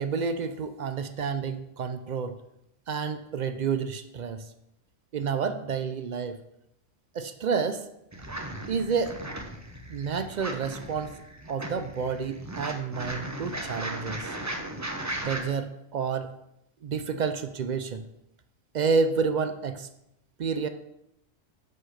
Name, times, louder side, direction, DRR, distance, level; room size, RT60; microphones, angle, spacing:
voice 1, 0.0-2.3 2.9-4.4 5.1-6.4 7.1-7.8 8.7-9.2 9.9-11.2 11.5-14.3 15.2-16.3 16.8-18.0 18.7-19.9 20.4-20.7, right 5 dB, 60° right, 9 dB, 0.4 m, -29 dB
sound 1, 8.1-15.4, right 1 dB, 15° right, 0.7 m, -37 dB
5.7 x 5.4 x 6.4 m, 0.83 s
omnidirectional pair, 1.3 m